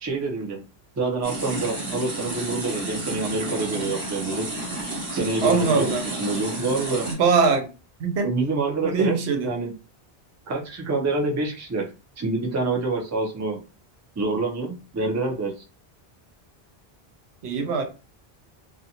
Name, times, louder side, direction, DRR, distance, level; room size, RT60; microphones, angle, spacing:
voice 1, 0.0-0.6 1.0-4.5 5.1-5.9 6.2-7.1 8.2-9.2 9.4-9.7 10.5-11.9 12.2-13.6 14.2-15.6, right 3 dB, 25° right, 0.3 m, -26 dB
sound 1, 1.2-7.1, right 2 dB, 60° right, 1.2 m, -31 dB
voice 2, 5.4-6.1 7.1-7.7 8.0-8.3 8.8-9.5 17.4-17.8, right 4 dB, 85° right, 0.8 m, -22 dB
2.4 x 2.2 x 2.8 m
omnidirectional pair, 1.1 m